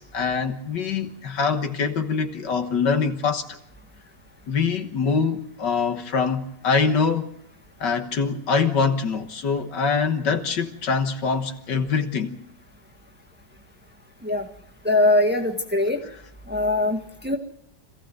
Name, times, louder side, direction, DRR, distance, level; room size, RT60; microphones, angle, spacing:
voice 1, 0.0-3.6 4.5-7.3 7.8-12.4, left 5 dB, 70° left, 6 dB, 1.9 m, -24 dB
voice 2, 14.8-16.0 16.5-17.4, left 2 dB, 5° right, 3 dB, 1.6 m, -22 dB
26.0 x 15.5 x 7.8 m, 0.78 s
omnidirectional pair, 2.0 m